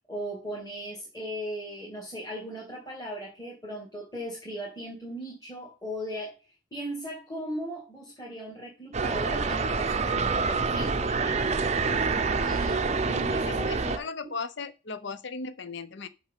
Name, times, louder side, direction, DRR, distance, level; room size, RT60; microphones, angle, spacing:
voice 1, 0.1-6.4 6.7-11.6 12.4-12.8 13.1-14.3, equal, 20° left, 2.2 m, -38 dB
sound 1, 8.9-14.0, right 4 dB, 30° right, 0.6 m, -27 dB
voice 2, 12.3-13.0 13.5-16.1, left 4 dB, 55° left, 0.7 m, -38 dB
6.5 x 5.2 x 6.6 m
head